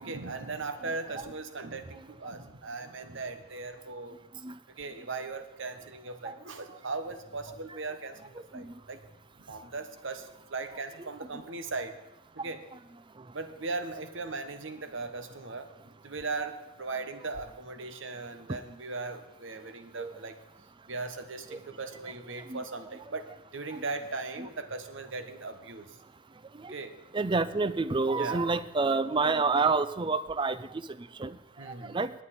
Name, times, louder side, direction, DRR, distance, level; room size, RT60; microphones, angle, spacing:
voice 1, 0.0-4.2 4.8-9.0 9.5-12.0 12.4-12.6 13.3-15.7 16.0-20.4 20.9-26.0 26.7-26.9 28.1-28.5 31.6-32.0, right 3 dB, 60° right, 9 dB, 1.1 m, -38 dB
voice 2, 0.8-1.3 4.4-4.6 6.2-6.4 7.7-7.8 8.5-8.7 11.0-11.4 18.5-18.6 20.0-20.1 21.5-21.6 22.5-22.6 23.7-23.8 24.4-24.5 26.5-26.7 27.1-32.1, right 4 dB, 20° right, 14 dB, 0.4 m, -30 dB
19.0 x 9.3 x 4.3 m, 0.99 s
head